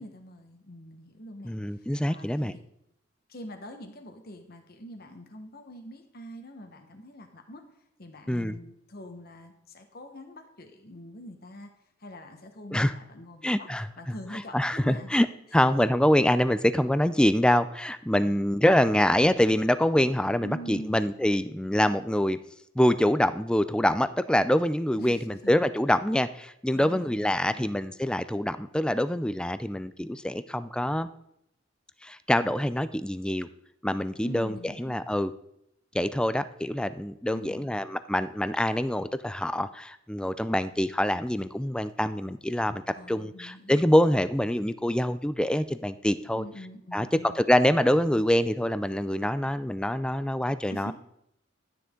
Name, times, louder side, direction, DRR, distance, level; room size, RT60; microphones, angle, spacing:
voice 1, 0.0-2.6 3.3-11.7 12.0-13.7 14.0-15.1 20.4-21.0 25.0-25.5 26.7-27.7 34.2-35.0 37.3-37.7 42.9-43.8 46.3-47.4 50.7-50.9, equal, 55° left, 6 dB, 1.3 m, -44 dB
voice 2, 1.5-2.6 8.3-8.6 12.7-12.9 13.4-13.9 14.5-15.3 15.5-22.4 22.8-31.1 32.0-33.5 33.8-35.3 35.9-42.8 43.1-46.4 46.9-47.1 47.3-50.9, left 1 dB, 5° left, 13 dB, 0.4 m, -25 dB
12.5 x 9.4 x 3.8 m, 0.77 s
head